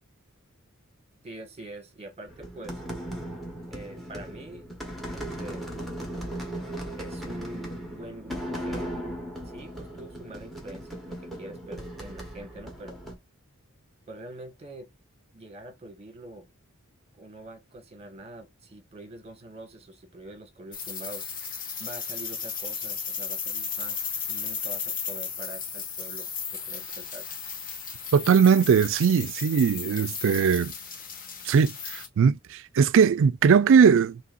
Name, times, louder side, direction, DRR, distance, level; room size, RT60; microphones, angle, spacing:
voice 1, 1.2-2.8 3.7-4.7 5.1-5.7 7.0-8.9 9.4-13.0 14.1-14.9 15.3-16.5 17.2-21.3 21.8-27.3, right 1 dB, 30° right, 1.6 m, -44 dB
sound 1, 2.3-13.2, right 1 dB, ahead, 1.5 m, -37 dB
sound 2, 20.7-32.1, left 6 dB, 40° left, 1.2 m, -35 dB
voice 2, 28.1-30.7 31.5-34.2, right 6 dB, 60° right, 0.4 m, -20 dB
5.4 x 2.9 x 2.5 m
head